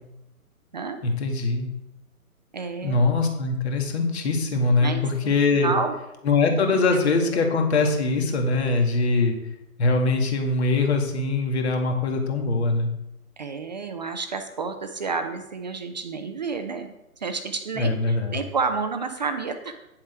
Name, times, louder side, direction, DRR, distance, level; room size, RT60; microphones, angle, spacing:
voice 1, 1.0-1.7 2.8-5.7 6.2-9.3 9.8-12.9 17.8-18.4, left 3 dB, 45° left, 3 dB, 2.1 m, -22 dB
voice 2, 2.5-3.0 4.7-5.9 6.7-7.0 13.4-16.9 17.2-19.8, right 4 dB, 30° right, 7 dB, 0.6 m, -30 dB
10.0 x 7.2 x 4.5 m, 0.90 s
figure-of-eight pair, 140°, 44 cm